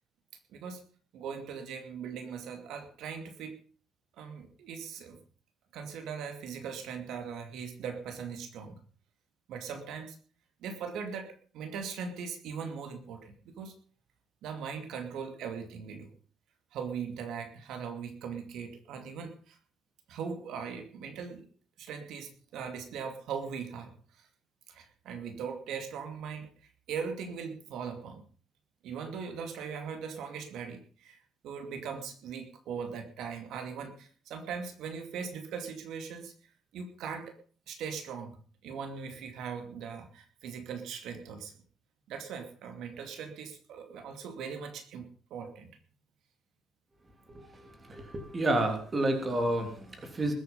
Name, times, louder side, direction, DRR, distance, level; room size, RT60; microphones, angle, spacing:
voice 1, 1.1-3.5 4.2-5.2 5.7-8.8 9.5-10.2 10.6-13.7 14.4-16.1 16.7-19.6 20.1-21.5 21.8-24.3 24.7-28.2 28.8-31.2 31.4-36.3 36.7-37.3 37.7-38.4 38.6-41.5 42.1-45.7 47.4-47.5, right 6 dB, 70° right, 6 dB, 2.5 m, -40 dB
voice 2, 47.9-50.3, right 1 dB, 20° right, 4 dB, 3.2 m, -29 dB
21.0 x 9.1 x 5.4 m, 0.42 s
cardioid pair, 160°, 0 cm